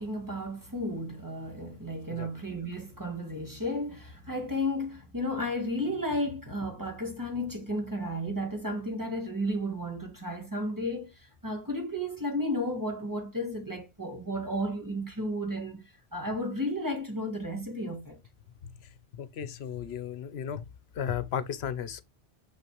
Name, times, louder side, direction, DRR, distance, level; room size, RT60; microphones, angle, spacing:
voice 1, 0.0-11.1 11.4-15.8 16.1-18.2, equal, 20° right, 2.0 m, -33 dB
voice 2, 19.2-20.6 20.9-22.0, left 8 dB, 75° left, 1.0 m, -34 dB
6.6 x 5.9 x 3.0 m
omnidirectional pair, 1.1 m